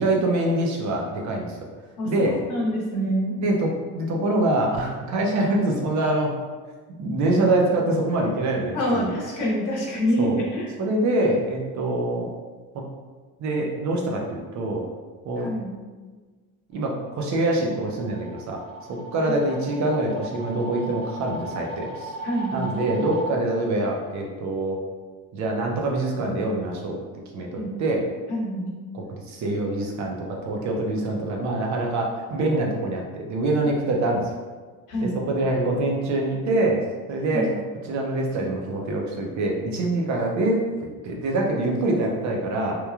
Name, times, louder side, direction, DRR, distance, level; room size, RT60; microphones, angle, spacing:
voice 1, 0.0-1.6 2.0-2.4 3.4-3.7 3.9-6.3 7.0-9.1 10.2-10.4 10.8-12.3 12.7-12.8 13.4-14.8 15.2-15.5 16.7-18.6 18.9-22.1 22.5-24.8 25.3-27.0 27.3-28.0 28.9-34.3 35.0-36.8 37.1-37.5 37.9-40.6 41.0-42.7, right 2 dB, 50° right, 0 dB, 0.5 m, -25 dB
voice 2, 2.0-3.4 8.7-10.7 15.4-15.8 19.2-19.3 22.2-22.6 27.5-27.8 28.3-28.7 34.9-35.2 37.3-37.5, equal, 55° left, -3 dB, 0.8 m, -26 dB
sound 1, 17.1-23.2, right 1 dB, 15° left, 0.8 m, -38 dB
3.0 x 2.2 x 2.3 m, 1.4 s
cardioid pair, 125°, 37 cm